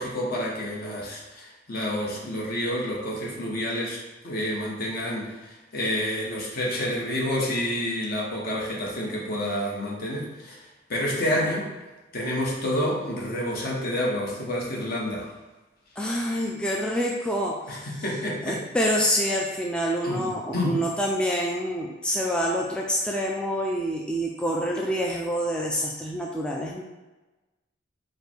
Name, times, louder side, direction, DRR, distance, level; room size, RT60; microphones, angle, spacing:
voice 1, 0.0-11.7 12.1-15.3 17.7-18.6 20.0-20.8, left 1 dB, 55° left, -3 dB, 1.1 m, -29 dB
voice 2, 16.0-17.9 18.4-26.8, equal, 5° left, -2 dB, 0.4 m, -27 dB
4.9 x 2.2 x 4.4 m, 1.1 s
head